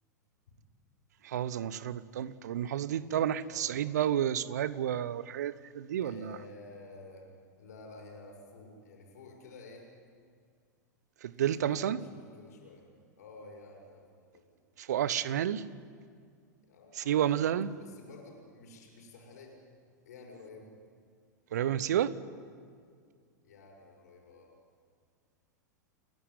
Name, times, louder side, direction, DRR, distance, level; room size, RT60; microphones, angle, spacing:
voice 1, 1.2-6.4 11.2-12.0 14.8-15.6 17.0-17.7 21.5-22.2, right 10 dB, 65° right, 18 dB, 0.9 m, -30 dB
voice 2, 3.4-3.8 6.0-7.3 7.6-9.9 11.3-12.9 13.2-14.0 14.3-14.5 16.7-17.4 17.7-19.6 20.0-20.7 23.4-24.5, left 3 dB, 65° left, 0 dB, 6.4 m, -51 dB
29.0 x 12.0 x 9.8 m, 2.1 s
figure-of-eight pair, 95°, 10 cm